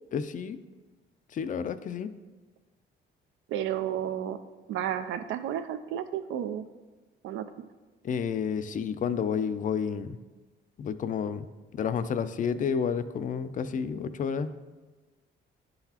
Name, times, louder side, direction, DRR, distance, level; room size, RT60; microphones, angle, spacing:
voice 1, 0.1-0.6 1.3-2.1 8.0-10.2 10.8-11.5 11.7-14.5, left 7 dB, 40° left, 12 dB, 0.4 m, -30 dB
voice 2, 3.5-4.4 4.7-6.6 7.2-7.5, right 10 dB, 80° right, 10 dB, 0.4 m, -32 dB
10.5 x 3.9 x 2.9 m, 1.2 s
cardioid pair, 90°, 20 cm